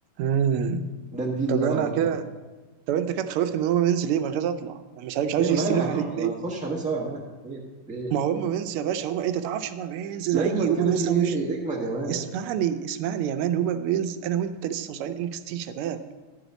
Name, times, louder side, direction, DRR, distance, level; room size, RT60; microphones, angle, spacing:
voice 1, 0.2-0.9 1.5-2.2 2.9-6.4 8.1-11.3 12.1-16.0, right 9 dB, 85° right, 10 dB, 1.5 m, -26 dB
voice 2, 1.1-2.2 5.4-7.6 7.9-8.1 10.3-12.2, right 3 dB, 5° right, -3 dB, 1.0 m, -28 dB
11.5 x 4.1 x 7.9 m, 1.2 s
omnidirectional pair, 2.4 m